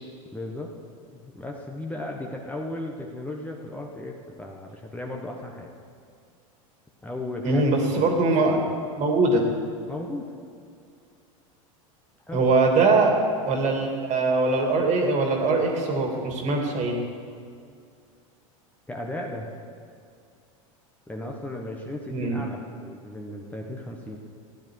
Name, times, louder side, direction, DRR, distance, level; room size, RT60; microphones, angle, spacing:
voice 1, 0.3-0.7 1.1-5.7 7.0-7.6 7.9-8.2 9.9-10.2 12.3-12.5 18.9-19.5 21.1-24.2, left 1 dB, 10° left, 0 dB, 1.2 m, -35 dB
voice 2, 7.4-8.6 8.9-9.4 12.3-13.2 13.4-17.0 22.1-22.4, right 3 dB, 40° right, 2 dB, 2.4 m, -22 dB
14.5 x 10.5 x 4.7 m, 2.3 s
hypercardioid pair, 105°, 18 cm